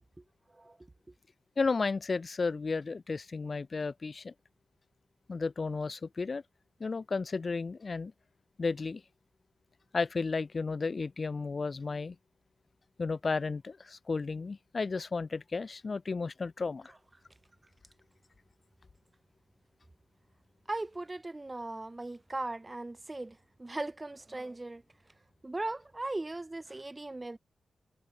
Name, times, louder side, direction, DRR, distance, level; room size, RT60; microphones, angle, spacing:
voice 1, 1.6-4.3 5.3-6.4 6.8-8.1 8.6-9.0 9.9-12.2 13.0-16.9, left 4 dB, 40° left, 5.8 m, -33 dB
voice 2, 20.7-24.8 25.4-27.4, right 2 dB, 20° right, 3.5 m, -38 dB
wide cardioid pair, 95°, 0 cm